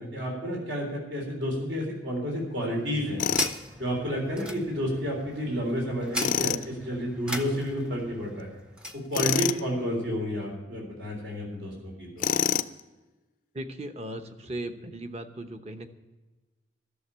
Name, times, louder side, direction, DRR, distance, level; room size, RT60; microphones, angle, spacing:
voice 1, 0.0-3.2 3.8-8.5 8.9-12.3, equal, 75° right, -1 dB, 3.7 m, -30 dB
sound 1, 2.5-9.1, left 1 dB, 5° right, 0.8 m, -38 dB
Tools, 3.2-3.6 6.2-6.6 9.1-9.6 12.2-12.8, left 8 dB, 45° left, 0.4 m, -26 dB
voice 2, 13.5-15.9, right 1 dB, 35° right, 7 dB, 0.9 m, -37 dB
13.0 x 6.9 x 9.9 m, 1.2 s
head